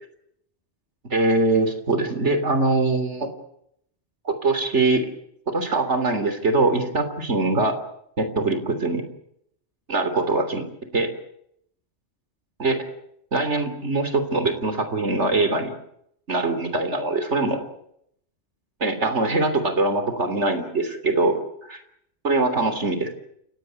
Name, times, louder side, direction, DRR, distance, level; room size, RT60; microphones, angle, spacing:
voice 1, 1.1-3.3 4.3-5.1 5.5-7.8 8.2-9.0 9.9-11.1 12.6-12.8 13.3-15.7 16.3-17.6 18.8-21.8 22.2-23.1, right 2 dB, 80° right, 9 dB, 3.7 m, -23 dB
29.5 x 17.5 x 8.2 m, 0.73 s
omnidirectional pair, 1.2 m